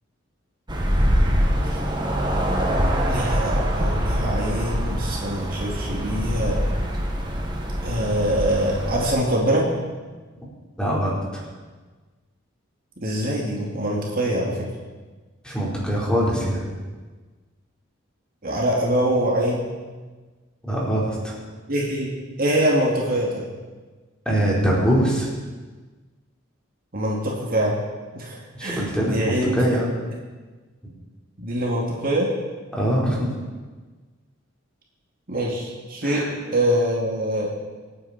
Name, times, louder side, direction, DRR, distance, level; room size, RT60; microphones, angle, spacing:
sound 1, 0.7-9.1, equal, 20° right, 1.8 m, -24 dB
voice 1, 3.1-6.6 7.8-9.7 13.0-14.6 18.4-19.6 21.7-22.1 22.4-23.4 26.9-27.8 28.1-29.7 31.4-32.3 35.3-37.5, right 1 dB, 45° right, -3 dB, 2.6 m, -24 dB
voice 2, 10.8-11.4 15.4-16.6 20.6-21.4 24.3-25.3 28.5-29.9 32.7-33.3 36.0-36.3, equal, 5° left, -5 dB, 4.3 m, -23 dB
26.0 x 9.7 x 4.4 m, 1.3 s
head